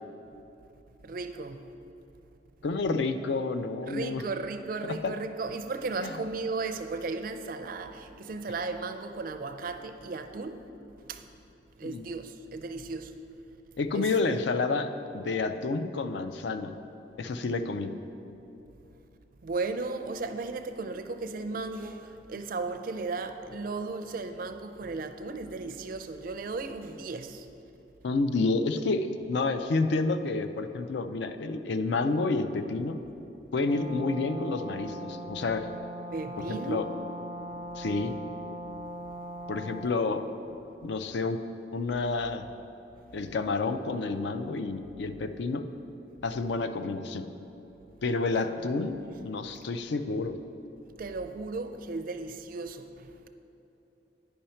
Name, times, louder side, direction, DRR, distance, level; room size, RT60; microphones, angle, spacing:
voice 1, 1.0-1.6 3.9-10.7 11.1-11.2 11.8-13.1 13.9-14.1 19.4-27.5 36.1-36.9 39.1-39.2 40.0-40.1 48.3-48.4 51.0-53.3, right 3 dB, 50° right, 0.4 m, -35 dB
voice 2, 2.6-4.2 4.8-5.1 6.0-6.1 11.8-12.0 13.8-16.7 17.2-18.0 28.0-33.0 33.5-35.7 36.4-36.9 37.8-38.2 39.5-40.2 40.8-41.4 41.7-42.4 43.1-45.7 46.2-47.3 48.0-50.4, left 3 dB, 65° left, 0.4 m, -29 dB
Brass instrument, 33.6-39.9, right 1 dB, 20° left, 0.7 m, -40 dB
9.5 x 5.5 x 4.3 m
head